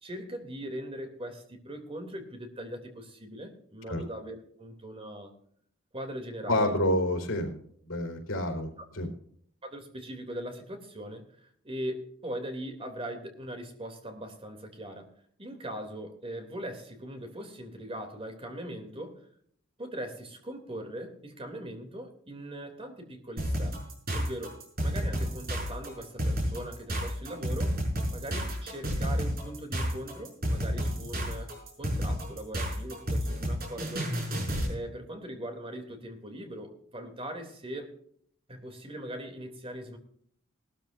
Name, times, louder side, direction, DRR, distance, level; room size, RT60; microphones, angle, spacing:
voice 1, 0.0-5.3 5.9-6.7 8.8-8.9 9.6-12.0 12.2-15.1 15.4-19.2 19.8-23.8 24.1-27.8 28.1-34.1 34.7-37.9 38.5-40.0, right 1 dB, 30° right, 5 dB, 2.8 m, -40 dB
voice 2, 6.5-9.1, left 1 dB, 80° left, 5 dB, 4.1 m, -29 dB
sound 1, 23.4-34.7, equal, 50° right, 6.1 m, -30 dB
19.5 x 13.5 x 2.6 m, 0.62 s
head